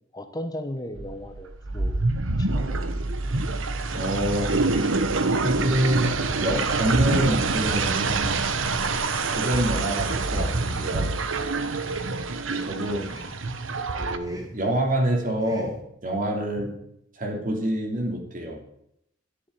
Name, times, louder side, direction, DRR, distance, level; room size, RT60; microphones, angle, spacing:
voice 1, 0.1-2.1 2.3-2.8, left 1 dB, 20° left, 7 dB, 1.0 m, -36 dB
sound 1, 1.0-14.2, right 3 dB, 85° right, 1.1 m, -26 dB
voice 2, 3.9-4.5 5.4-8.3 8.9-11.1 12.5-13.1 14.0-16.7 17.2-18.6, right 1 dB, 45° right, 2 dB, 2.9 m, -27 dB
sound 2, 4.7-5.1 5.9-6.2 7.0-7.4 8.2-8.6 9.4-9.8 10.6-11.0 11.8-12.2 13.0-13.4 14.2-14.6 15.4-15.8, equal, 20° right, 2.4 m, -44 dB
11.5 x 7.1 x 9.3 m, 0.75 s
head